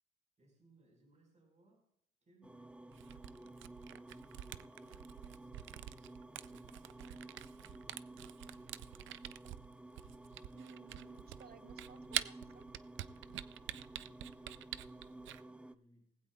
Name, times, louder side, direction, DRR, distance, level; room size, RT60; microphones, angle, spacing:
voice 1, 0.4-1.9 2.2-3.5 6.2-7.2 7.5-8.4 13.0-16.3, right 1 dB, 35° right, 1 dB, 4.8 m, -70 dB
sound 1, 2.4-15.7, right 2 dB, 5° right, 0.5 m, -53 dB
Camera, 2.9-15.4, right 13 dB, 75° right, 0.5 m, -46 dB
voice 2, 10.5-12.7 13.6-13.7, right 7 dB, 55° right, 13 dB, 0.8 m, -58 dB
19.0 x 15.5 x 2.3 m, 0.73 s
cardioid pair, 90°, 20 cm